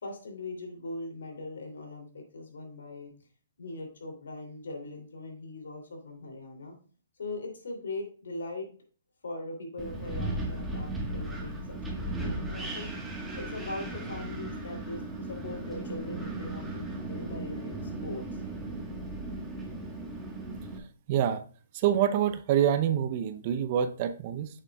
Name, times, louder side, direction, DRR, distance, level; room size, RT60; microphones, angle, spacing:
voice 1, 0.0-3.1 3.6-6.7 7.2-8.7 9.2-12.9 13.3-18.4, left 2 dB, 75° left, 2 dB, 3.0 m, -40 dB
Wind, 9.8-20.8, right 2 dB, 5° right, 1.4 m, -36 dB
voice 2, 21.1-21.4 21.7-24.5, right 10 dB, 40° right, 10 dB, 0.7 m, -26 dB
8.8 x 6.7 x 2.3 m, 0.41 s
hypercardioid pair, 140°, 0 cm